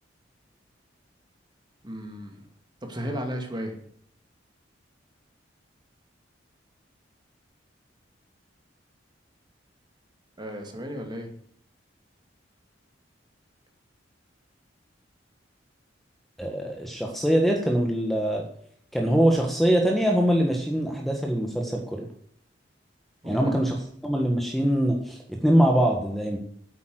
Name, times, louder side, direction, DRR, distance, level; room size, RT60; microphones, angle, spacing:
voice 1, 1.8-2.5 2.8-3.8 10.4-11.3 23.2-23.6, equal, 25° right, 3 dB, 2.3 m, -34 dB
voice 2, 16.4-18.4 18.9-22.1 23.3-23.8 24.0-26.4, equal, ahead, 1 dB, 1.5 m, -23 dB
9.0 x 8.6 x 7.8 m, 0.65 s
head